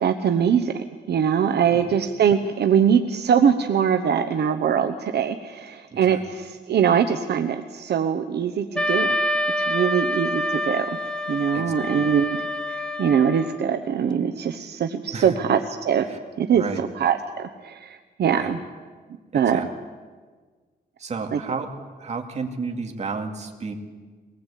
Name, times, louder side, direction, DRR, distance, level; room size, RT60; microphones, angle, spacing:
voice 1, 0.0-9.2 9.7-10.9 11.3-12.4 12.7-16.1 16.4-16.6 17.0-18.6 19.3-19.7 21.3-21.4, right 8 dB, 70° right, 6 dB, 1.0 m, -22 dB
voice 2, 5.9-6.2 11.5-12.2 15.1-15.4 16.0-16.2 16.5-16.9 18.3-18.6 19.3-19.7 21.0-21.7 22.0-23.8, right 4 dB, 40° right, 3 dB, 2.3 m, -32 dB
Wind instrument woodwind instrument, 8.7-13.6, left 1 dB, 5° left, 0.8 m, -27 dB
22.5 x 19.0 x 8.4 m, 1.5 s
wide cardioid pair, 165°, 18 cm